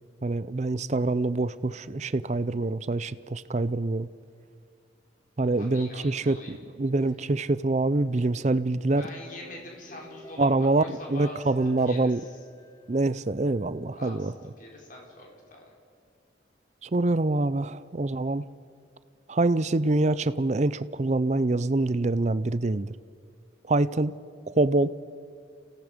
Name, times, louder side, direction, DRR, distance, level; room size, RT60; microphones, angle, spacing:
voice 1, 0.2-4.1 5.4-9.1 10.4-10.8 11.1-12.2 12.9-14.3 16.8-18.4 19.3-22.9 23.7-24.1 24.5-25.0, right 2 dB, 35° right, 16 dB, 0.5 m, -25 dB
voice 2, 5.6-6.5 9.0-11.5 11.8-12.4 13.9-15.7, left 2 dB, 45° left, -1 dB, 4.3 m, -44 dB
sound 1, 8.9-13.9, right 1 dB, 20° left, 2.8 m, -50 dB
29.5 x 17.5 x 5.2 m, 2.3 s
head